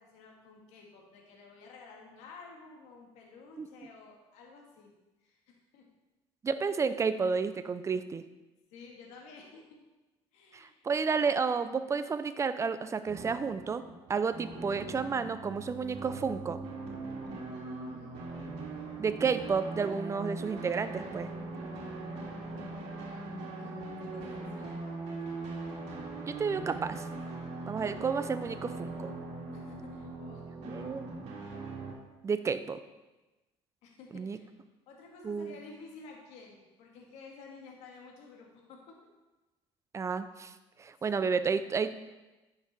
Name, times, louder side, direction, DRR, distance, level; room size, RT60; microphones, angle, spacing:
voice 1, 0.0-4.9 5.2-5.8 8.7-9.8 10.3-10.8 17.8-18.2 23.0-24.7 25.2-25.3 27.6-27.8 29.5-30.6 33.8-34.6 34.9-39.0 41.1-41.3, left 4 dB, 80° left, 0 dB, 1.8 m, -52 dB
voice 2, 6.4-8.2 10.5-13.8 14.1-16.6 19.0-21.3 26.3-27.1 27.7-29.1 30.6-31.0 32.2-32.8 34.1-34.4 35.2-35.6 39.9-40.5 40.8-41.9, right 5 dB, 25° right, 12 dB, 0.5 m, -31 dB
sound 1, 13.1-31.9, right 3 dB, 70° right, 2.1 m, -41 dB
9.8 x 6.0 x 4.1 m, 1.1 s
cardioid pair, 100°, 11 cm